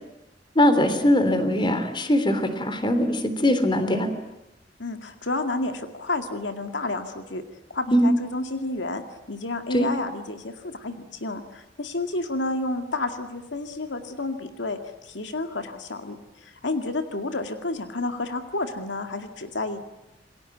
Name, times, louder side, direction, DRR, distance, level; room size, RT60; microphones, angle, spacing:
voice 1, 0.6-4.1 7.9-8.1 9.7-9.9, left 1 dB, 25° left, 9 dB, 3.4 m, -21 dB
voice 2, 4.8-7.4 7.7-9.0 9.3-19.8, left 2 dB, 80° left, 7 dB, 2.1 m, -30 dB
28.0 x 21.5 x 9.2 m, 0.95 s
head